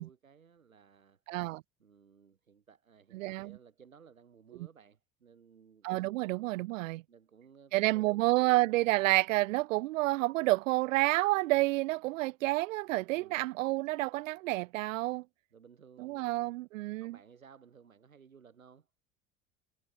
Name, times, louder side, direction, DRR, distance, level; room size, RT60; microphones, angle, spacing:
voice 1, 0.0-1.2 1.8-5.9 7.1-8.6 13.1-13.4 15.5-16.6 17.0-18.9, right 6 dB, 90° right, 6.0 m, -58 dB
voice 2, 1.3-1.6 3.1-3.6 4.6-4.7 5.8-7.0 7.7-15.2 16.0-17.2, right 19 dB, 70° right, 0.8 m, -29 dB
hypercardioid pair, 70°, 40 cm